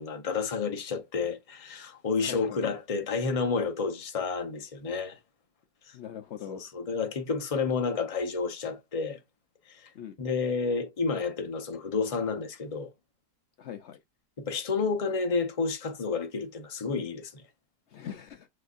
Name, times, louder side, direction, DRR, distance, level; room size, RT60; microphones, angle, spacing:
voice 1, 0.0-5.2 5.9-6.0 6.5-9.2 9.7-9.9 10.2-12.9 14.4-17.4, left 4 dB, 35° left, 0.5 m, -30 dB
voice 2, 2.2-2.6 5.9-6.6 9.9-10.2 13.6-14.0 17.9-18.5, left 9 dB, 85° left, 0.6 m, -41 dB
6.3 x 2.6 x 2.4 m
omnidirectional pair, 1.8 m